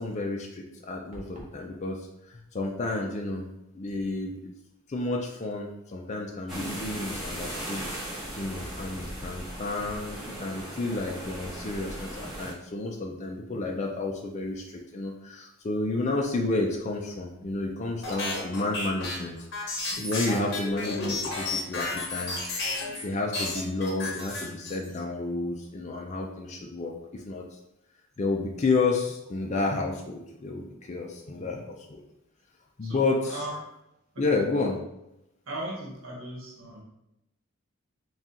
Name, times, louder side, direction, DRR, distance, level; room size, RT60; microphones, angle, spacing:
voice 1, 0.0-3.5 3.7-4.5 4.9-7.8 8.4-22.4 23.0-27.6 28.2-32.0 32.8-33.5 34.2-34.8, left 3 dB, 35° left, 0 dB, 0.4 m, -31 dB
sound 1, 1.1-1.6, equal, 35° right, 0.8 m, -45 dB
sound 2, 6.5-12.5, right 1 dB, ahead, 1.5 m, -37 dB
sound 3, 18.0-23.0 23.3-25.0, left 3 dB, 55° left, 0.9 m, -32 dB
voice 2, 32.8-33.6 34.1-34.4 35.5-36.8, right 1 dB, 70° right, -2 dB, 1.0 m, -38 dB
4.2 x 2.3 x 3.7 m, 0.88 s
head